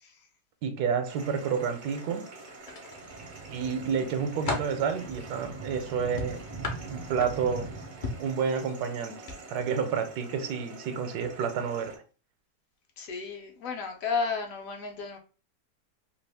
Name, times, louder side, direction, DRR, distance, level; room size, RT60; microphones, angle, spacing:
voice 1, 0.6-2.3 3.5-6.4 6.9-7.7 8.0-9.2 9.5-11.9, right 6 dB, 80° right, 1.1 m, -30 dB
sound 1, 1.0-12.0, right 3 dB, 50° right, 0.5 m, -44 dB
sound 2, 2.6-3.4 3.9-4.8 6.2-7.6 8.0-8.3 9.2-9.4 9.7-9.9, left 3 dB, 50° left, 0.6 m, -35 dB
voice 2, 13.0-15.2, left 5 dB, 70° left, 0.9 m, -32 dB
2.8 x 2.4 x 3.3 m
omnidirectional pair, 1.7 m